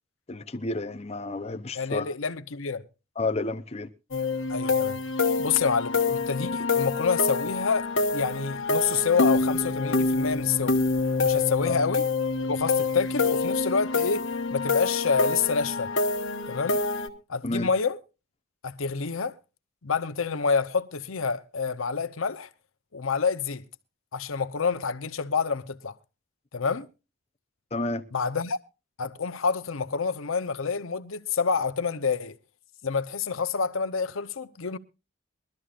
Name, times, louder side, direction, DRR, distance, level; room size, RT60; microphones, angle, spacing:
voice 1, 0.3-2.1 3.2-3.9 11.7-11.8 17.4-17.7 27.7-28.0, left 2 dB, 30° left, 0.7 m, -30 dB
voice 2, 1.7-2.8 4.5-5.0 5.4-10.8 11.2-12.1 12.4-15.9 16.5-16.8 17.3-18.0 18.6-19.3 19.8-22.5 22.9-23.6 24.1-25.9 26.5-26.9 28.1-28.6 29.0-32.4 32.8-34.8, left 5 dB, 85° left, 0.8 m, -28 dB
sound 1, 4.1-17.1, left 3 dB, 65° left, 1.5 m, -26 dB
22.5 x 13.0 x 2.5 m
head